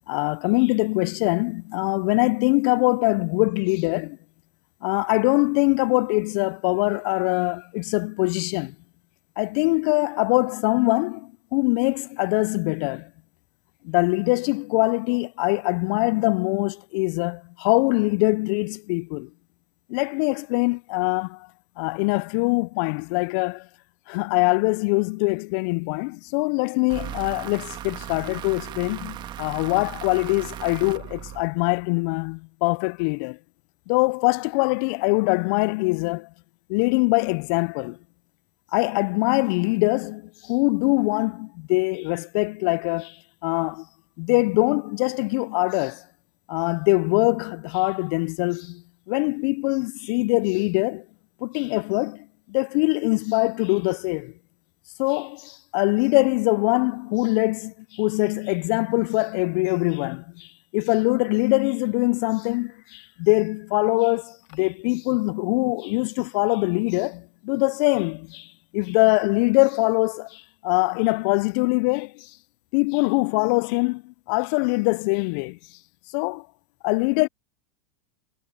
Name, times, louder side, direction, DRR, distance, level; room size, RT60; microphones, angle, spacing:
voice 1, 0.1-4.2 4.8-8.7 9.4-13.1 13.8-19.3 19.9-21.4 21.8-23.6 24.1-33.4 33.9-36.3 36.7-38.0 38.7-43.2 43.4-43.8 44.2-46.0 46.5-48.8 49.1-51.0 51.4-54.3 55.0-60.5 60.7-68.5 68.7-72.2 72.7-75.6 76.1-76.4 76.8-77.3, left 29 dB, 55° left, 0.5 m, -23 dB
sound 1, 26.9-31.8, right 12 dB, 35° right, 1.9 m, -37 dB
hypercardioid pair, 100°, 13 cm